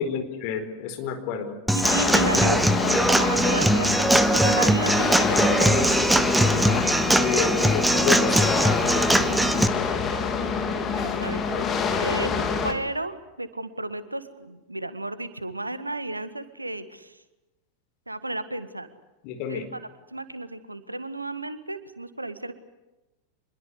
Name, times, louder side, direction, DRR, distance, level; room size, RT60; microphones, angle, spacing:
voice 1, 0.0-1.6 6.5-8.9 19.2-19.7, left 7 dB, 45° left, 7 dB, 4.5 m, -30 dB
Human voice / Acoustic guitar / Drum, 1.7-9.7, right 1 dB, 5° right, 1.4 m, -21 dB
voice 2, 1.7-6.2 10.9-17.2 18.1-18.9 19.5-19.8 20.1-22.5, right 2 dB, 85° right, 12 dB, 1.8 m, -33 dB
sound 1, 1.8-12.7, left 5 dB, 25° left, 3.4 m, -26 dB
26.5 x 22.0 x 8.3 m, 1.1 s
figure-of-eight pair, 90°, 0 cm